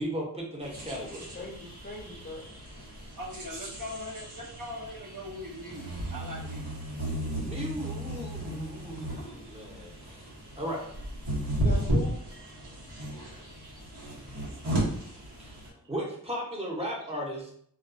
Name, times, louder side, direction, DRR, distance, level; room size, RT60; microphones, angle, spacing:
voice 1, 0.0-1.5 7.3-10.3 10.6-10.9 15.4-15.5 15.9-17.5, equal, 15° right, -3 dB, 0.7 m, -36 dB
sound 1, 0.6-15.7, right 1 dB, 80° right, 1.0 m, -35 dB
voice 2, 1.3-2.5 11.6-12.2 13.9-15.8, left 2 dB, 25° left, -2 dB, 0.6 m, -43 dB
voice 3, 3.2-6.9 15.2-15.3, left 1 dB, 55° right, -2 dB, 0.6 m, -41 dB
2.3 x 2.3 x 2.5 m, 0.65 s
wide cardioid pair, 80°, 40 cm